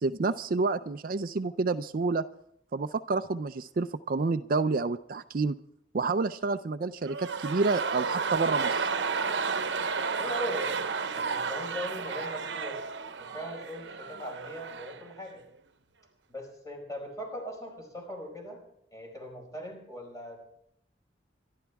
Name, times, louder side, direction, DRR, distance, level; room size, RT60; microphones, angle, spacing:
voice 1, 0.0-2.3 2.7-5.6 5.9-8.9, right 3 dB, 50° right, 12 dB, 0.4 m, -29 dB
sound 1, 7.0-15.1 15.4-15.5, right 5 dB, 75° right, 0.9 m, -32 dB
voice 2, 10.2-10.8 11.1-12.8 13.2-15.4 16.3-18.6 18.9-20.4, equal, 20° left, 1 dB, 4.9 m, -40 dB
25.5 x 12.0 x 3.5 m, 0.72 s
head